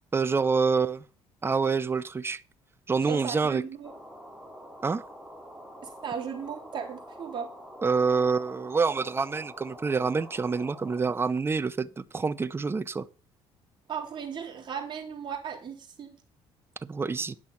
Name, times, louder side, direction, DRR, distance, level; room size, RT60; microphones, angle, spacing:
voice 1, 0.1-1.0 1.4-2.4 2.9-3.6 4.8-5.1 7.8-13.0 16.8-17.3, right 4 dB, 20° right, 0.6 m, -27 dB
voice 2, 3.1-3.9 5.8-7.5 13.9-16.2, right 7 dB, 40° right, 3.7 m, -36 dB
sound 1, 3.8-11.0, equal, ahead, 3.0 m, -46 dB
10.5 x 6.2 x 5.7 m
cardioid pair, 95°, 11 cm